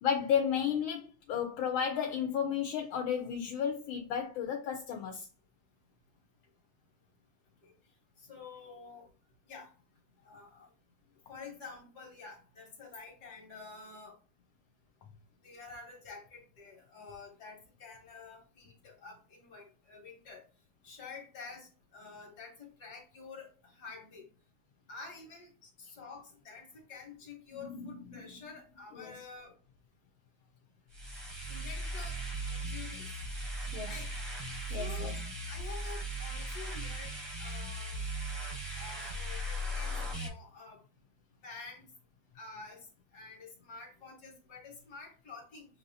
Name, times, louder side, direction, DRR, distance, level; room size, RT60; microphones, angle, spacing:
voice 1, 0.0-5.3 27.5-27.9 28.1-28.4 28.9-29.2 33.7-33.9 34.7-35.2, left 8 dB, 75° left, 1.4 m, -33 dB
voice 2, 8.3-9.1 9.5-9.7 10.2-10.7 11.3-14.1 15.4-20.4 20.8-24.2 24.9-25.5 25.8-29.5 31.5-32.2 32.5-33.1 33.8-34.1 34.7-35.1 35.5-38.0 38.8-40.8 41.4-41.8 42.3-42.9 43.1-45.7, left 4 dB, 55° left, 1.5 m, -49 dB
sound 1, 30.9-40.3, right 1 dB, 25° right, 0.6 m, -38 dB
6.2 x 2.7 x 2.7 m
omnidirectional pair, 2.3 m